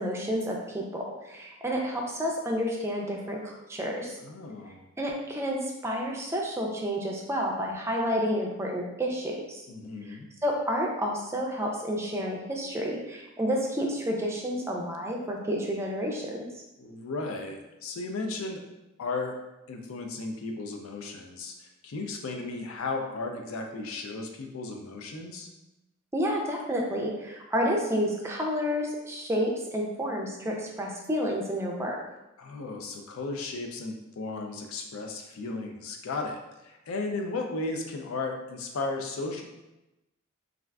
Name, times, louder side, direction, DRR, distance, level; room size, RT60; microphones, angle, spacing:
voice 1, 0.0-4.2 5.0-9.6 10.4-16.5 26.1-32.0, equal, 15° right, -1 dB, 0.4 m, -30 dB
voice 2, 4.2-4.8 9.7-10.3 16.8-18.6 19.0-19.4 19.7-25.5 32.4-39.4, left 3 dB, 80° left, 3 dB, 0.4 m, -35 dB
3.4 x 2.4 x 2.2 m, 0.96 s
head